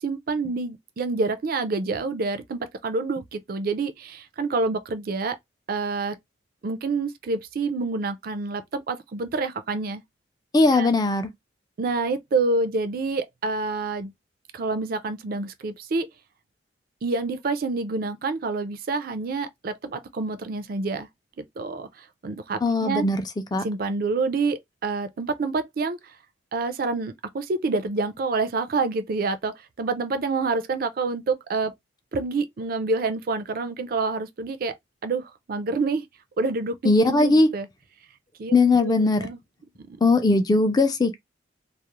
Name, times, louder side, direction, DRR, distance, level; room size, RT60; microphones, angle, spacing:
voice 1, 0.0-5.4 5.7-6.2 6.6-10.0 10.7-10.9 11.8-14.1 14.5-16.1 17.0-21.1 21.4-23.0 23.6-26.0 26.5-31.7 32.1-34.7 35.0-36.1 36.4-36.8 37.0-37.7 38.4-38.5 38.8-39.4 39.8-40.0, right 3 dB, 50° right, 0.4 m, -27 dB
voice 2, 10.5-11.3 22.6-23.2 23.5-23.6 36.8-37.5 38.5-39.3 40.0-41.2, left 3 dB, 20° left, 0.4 m, -19 dB
2.3 x 2.0 x 2.9 m
head